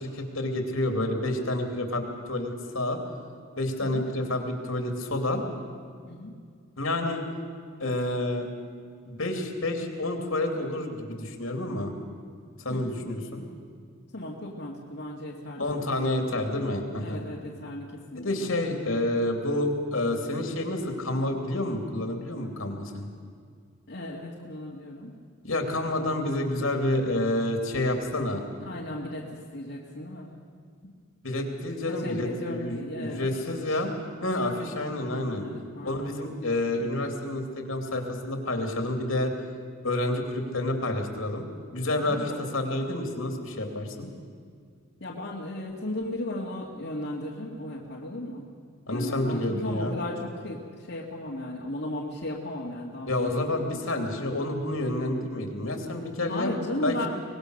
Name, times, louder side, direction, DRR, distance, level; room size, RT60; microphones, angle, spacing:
voice 1, 0.0-3.0 3.6-5.4 6.8-7.2 7.8-8.5 9.1-11.9 12.6-13.4 15.6-17.2 18.1-23.1 25.4-28.4 31.2-33.9 34.2-35.5 35.8-39.3 39.8-41.4 41.7-42.2 42.5-44.1 48.9-49.9 53.1-56.5 56.8-57.1, left 1 dB, 70° left, 3 dB, 3.1 m, -29 dB
voice 2, 14.1-15.8 16.1-16.3 17.0-18.5 23.9-25.1 28.6-30.3 30.8-30.9 31.8-33.8 35.3-36.1 42.0-42.4 44.1-44.2 45.0-48.5 48.9-53.4 53.7-53.8 56.3-57.1, left 1 dB, 55° left, -4 dB, 2.2 m, -36 dB
24.5 x 20.0 x 6.6 m, 2.1 s
head